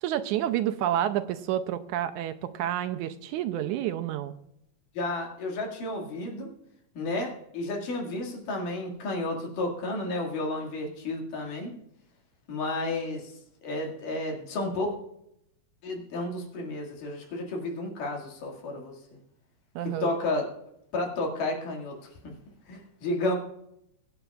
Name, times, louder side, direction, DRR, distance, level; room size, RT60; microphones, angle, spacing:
voice 1, 0.0-4.3 19.8-20.1, right 11 dB, 80° right, 10 dB, 1.9 m, -29 dB
voice 2, 4.9-6.5 6.9-11.8 12.5-13.4 13.6-14.9 15.8-19.0 19.8-20.5 20.9-22.0 22.2-22.3 22.7-23.4, left 2 dB, 85° left, 0 dB, 3.7 m, -32 dB
21.5 x 9.0 x 2.4 m, 0.78 s
omnidirectional pair, 3.7 m